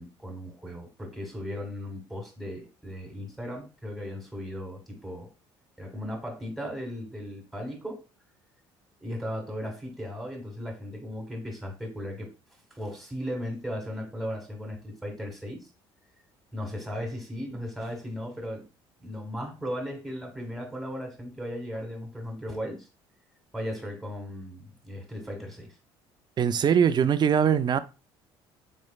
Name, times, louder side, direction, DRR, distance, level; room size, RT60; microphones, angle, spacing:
voice 1, 0.0-5.3 5.8-8.0 9.0-12.3 12.7-15.7 16.5-18.6 19.0-22.9 23.5-25.7, equal, ahead, 1.7 m, -36 dB
voice 2, 26.4-27.8, right 8 dB, 35° right, 0.4 m, -22 dB
4.2 x 3.1 x 2.3 m
hypercardioid pair, 65°, 12 cm